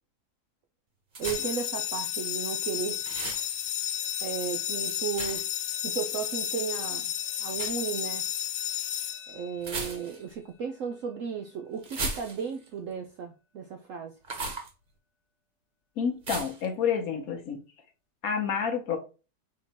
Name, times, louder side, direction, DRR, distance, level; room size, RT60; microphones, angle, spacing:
sound 1, 1.1-1.7 3.0-3.5 5.1-5.6 7.5-7.8 9.6-10.3 11.8-12.7 14.2-14.7 16.2-16.7, right 3 dB, 35° right, 0.9 m, -36 dB
sound 2, 1.2-9.9, left 10 dB, 80° left, 1.3 m, -32 dB
voice 1, 1.2-3.0 4.2-5.5 5.8-7.1 7.4-8.3 9.3-14.1, right 7 dB, 75° right, 0.7 m, -35 dB
voice 2, 16.0-17.6 18.2-19.0, left 7 dB, 60° left, 1.2 m, -29 dB
4.3 x 2.9 x 4.1 m
omnidirectional pair, 1.9 m